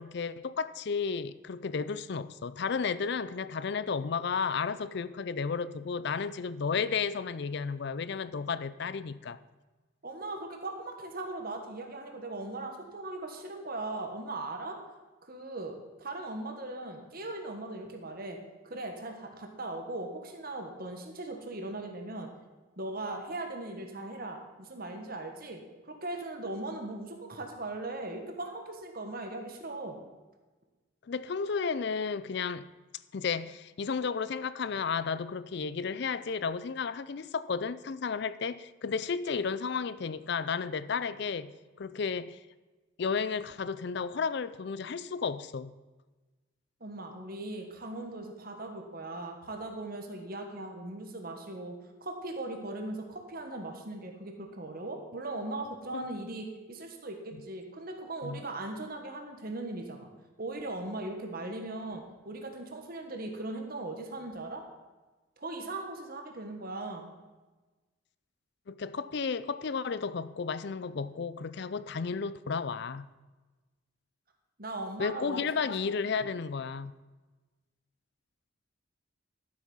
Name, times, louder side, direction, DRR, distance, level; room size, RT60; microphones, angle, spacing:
voice 1, 0.0-9.4 31.1-32.7 33.1-42.4 43.0-45.7 55.9-56.0 58.2-58.4 68.7-73.1 75.0-77.0, left 5 dB, 55° left, 0.4 m, -33 dB
voice 2, 10.0-14.8 15.2-18.4 18.6-22.3 22.8-30.0 46.8-51.7 52.0-60.1 60.4-64.6 65.4-67.1 74.6-75.7, right 2 dB, 45° right, 1.6 m, -39 dB
12.5 x 7.8 x 5.6 m
head